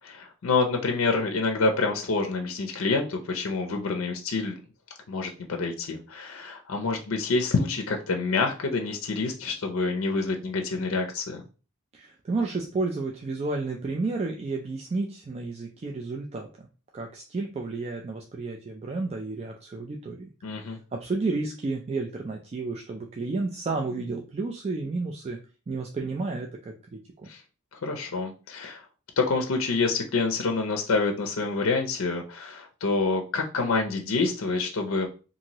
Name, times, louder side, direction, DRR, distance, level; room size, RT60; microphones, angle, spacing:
voice 1, 0.0-4.5 5.1-11.4 20.4-20.8 27.3-27.4 27.7-28.9 29.2-35.1, left 3 dB, 75° left, 3 dB, 0.5 m, -27 dB
voice 2, 11.9-16.7 16.9-20.3 20.7-25.4 25.7-27.3, right 3 dB, 30° right, 2 dB, 0.3 m, -31 dB
2.7 x 2.6 x 2.9 m, 0.35 s
head